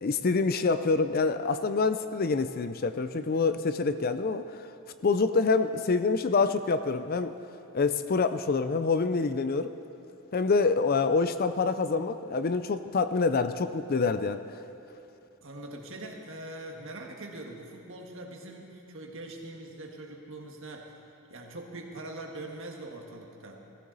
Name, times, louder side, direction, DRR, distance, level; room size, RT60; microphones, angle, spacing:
voice 1, 0.0-4.7 5.0-7.3 7.7-9.7 10.3-14.4, left 4 dB, 40° left, 11 dB, 0.4 m, -26 dB
voice 2, 15.4-21.0 21.3-23.6, right 2 dB, 60° right, 1 dB, 1.7 m, -42 dB
17.5 x 14.5 x 4.0 m, 2.9 s
head